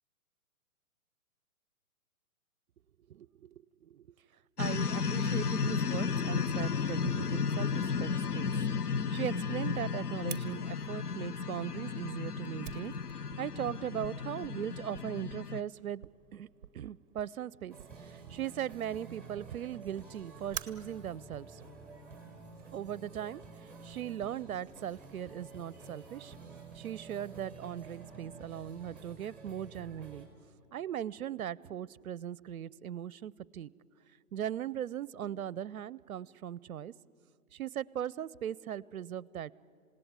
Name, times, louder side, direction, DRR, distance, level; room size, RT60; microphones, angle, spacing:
voice 1, 3.1-4.1 4.6-8.5 8.8-16.5 16.7-17.8 18.0-21.6 22.7-26.3 26.7-30.3 30.7-33.7 34.3-36.9 37.5-39.5, right 10 dB, 65° right, 23 dB, 0.7 m, -39 dB
sound 1, 4.6-15.6, left 5 dB, 90° left, 0.8 m, -33 dB
Fire, 10.3-22.8, right 10 dB, 35° right, 1.0 m, -50 dB
sound 2, 17.7-30.3, right 4 dB, 5° left, 4.1 m, -50 dB
27.5 x 18.0 x 9.4 m, 2.4 s
figure-of-eight pair, 130°, 45 cm